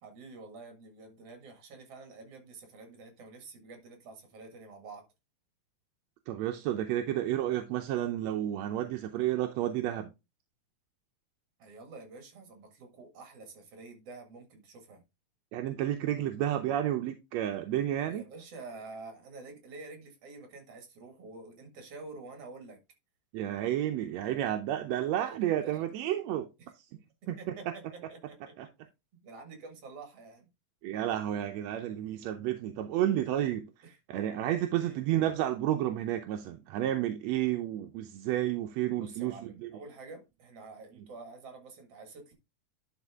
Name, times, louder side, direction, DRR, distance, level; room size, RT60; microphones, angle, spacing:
voice 1, 0.0-5.1 11.6-15.0 18.0-22.8 25.2-25.9 26.6-26.7 27.2-28.5 29.2-30.5 34.8-35.0 39.0-42.3, right 3 dB, 55° right, 2.8 m, -48 dB
voice 2, 6.3-10.1 15.5-18.3 23.3-26.5 26.8-26.9 27.3-27.6 28.6-28.7 30.8-39.7, right 12 dB, 75° right, 1.8 m, -31 dB
11.0 x 4.4 x 3.5 m
omnidirectional pair, 3.5 m